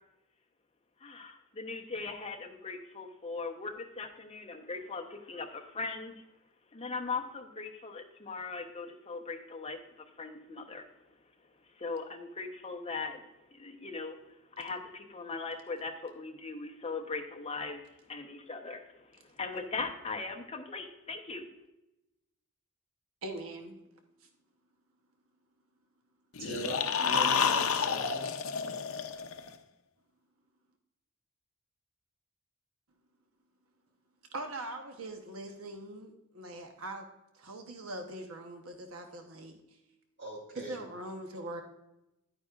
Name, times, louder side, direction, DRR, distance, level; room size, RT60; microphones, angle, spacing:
voice 1, 1.0-6.2 6.7-10.9 11.7-13.2 13.5-21.5, left 4 dB, 30° left, 4 dB, 0.9 m, -39 dB
voice 2, 23.2-23.8 34.3-37.1 37.3-39.6 40.5-41.6, right 1 dB, 80° right, 4 dB, 1.0 m, -42 dB
sound 1, 26.4-29.5, left 6 dB, 75° left, 0.6 m, -29 dB
voice 3, 26.4-28.3 40.2-40.8, right 2 dB, 55° right, -1 dB, 3.3 m, -41 dB
10.5 x 9.1 x 2.4 m, 0.91 s
head